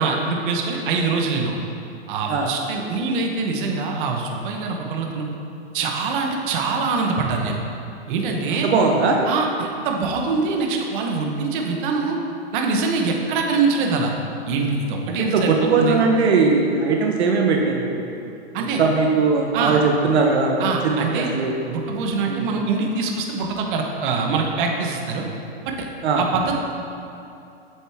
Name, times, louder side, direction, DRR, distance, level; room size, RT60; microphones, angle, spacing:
voice 1, 0.0-1.5 2.1-5.3 5.7-7.6 8.1-8.7 9.2-12.2 12.5-14.1 14.5-16.0 18.5-18.8 19.5-19.8 20.6-21.3 21.7-25.3 25.7-25.9 26.2-26.6, right 4 dB, 50° right, 2 dB, 1.1 m, -24 dB
voice 2, 8.5-9.2 15.1-18.3 18.6-21.5 22.2-22.5 26.0-26.2, right 4 dB, 75° right, 1 dB, 1.0 m, -20 dB
7.8 x 7.6 x 3.5 m, 2.7 s
hypercardioid pair, 140°, 33 cm